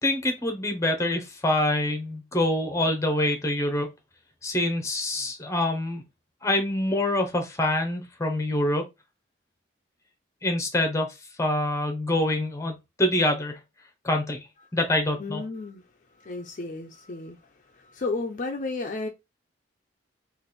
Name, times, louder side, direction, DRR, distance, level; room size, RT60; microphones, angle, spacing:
voice 1, 0.0-3.9 4.4-6.0 6.4-8.8 10.4-11.1 11.4-13.6 14.0-14.5 14.7-15.4, left 1 dB, 15° left, 0.9 m, -25 dB
voice 2, 15.2-15.8 16.2-17.4 17.7-19.1, left 3 dB, 40° left, 0.5 m, -33 dB
3.3 x 2.5 x 4.1 m
head